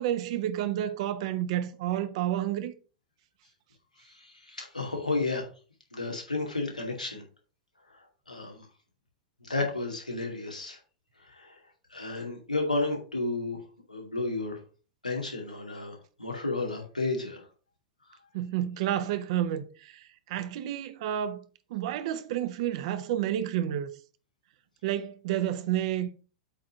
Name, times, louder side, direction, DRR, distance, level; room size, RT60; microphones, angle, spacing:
voice 1, 0.0-2.7 18.3-21.4 21.7-23.9 24.8-26.1, right 11 dB, 55° right, 0.9 m, -30 dB
voice 2, 4.2-5.5 5.9-7.2 8.3-8.6 9.4-10.8 11.3-11.5 11.9-13.6 13.9-14.6 15.0-17.4, left 3 dB, 90° left, 2.3 m, -32 dB
8.1 x 3.8 x 5.9 m
figure-of-eight pair, 90°, 4 cm